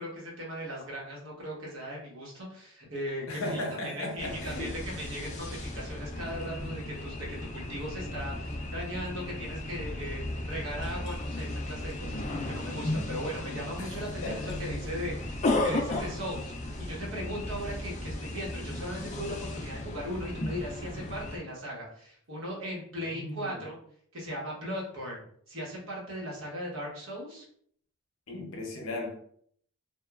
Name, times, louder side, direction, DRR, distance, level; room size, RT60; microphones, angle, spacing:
voice 1, 0.0-16.5 16.8-23.8 24.1-27.4, equal, 65° right, 1.0 m, -38 dB
voice 2, 3.3-4.8 13.8-13.9 14.2-14.6 23.1-23.6 28.3-29.1, left 2 dB, 65° left, 0.7 m, -36 dB
sound 1, 4.2-21.4, left 1 dB, 35° left, 0.3 m, -35 dB
2.9 x 2.2 x 2.3 m
head